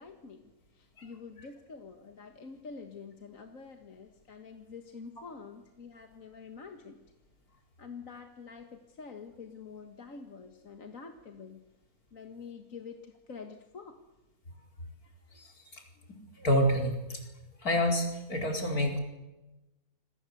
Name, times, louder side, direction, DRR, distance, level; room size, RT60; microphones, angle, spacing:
voice 1, 0.0-7.0 7.8-11.6 12.1-14.0, left 5 dB, 60° left, 5 dB, 2.1 m, -47 dB
voice 2, 15.3-15.8 16.4-17.2 17.6-19.0, equal, 75° left, 2 dB, 4.8 m, -28 dB
27.5 x 22.0 x 8.0 m, 1.0 s
omnidirectional pair, 1.6 m